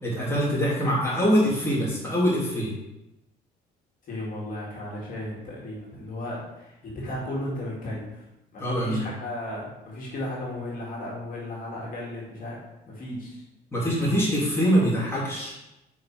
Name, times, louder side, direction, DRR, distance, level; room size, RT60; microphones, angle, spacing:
voice 1, 0.0-2.7 8.6-9.1 13.7-15.6, equal, 15° left, -7 dB, 2.6 m, -24 dB
voice 2, 4.1-8.2 8.5-12.6 12.9-13.4, left 1 dB, 55° left, -5 dB, 2.4 m, -35 dB
5.8 x 4.9 x 4.5 m, 0.93 s
cardioid pair, 110°, 17 cm